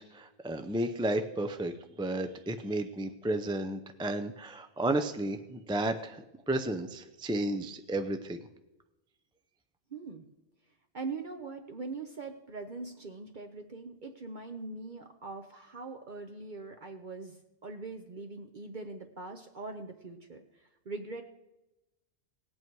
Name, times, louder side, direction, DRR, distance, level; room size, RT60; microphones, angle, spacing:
voice 1, 0.0-8.4, right 1 dB, 5° right, 7 dB, 0.4 m, -33 dB
voice 2, 9.9-10.3 10.9-21.2, right 3 dB, 50° right, 4 dB, 0.9 m, -42 dB
18.0 x 8.5 x 4.6 m, 0.96 s
omnidirectional pair, 1.1 m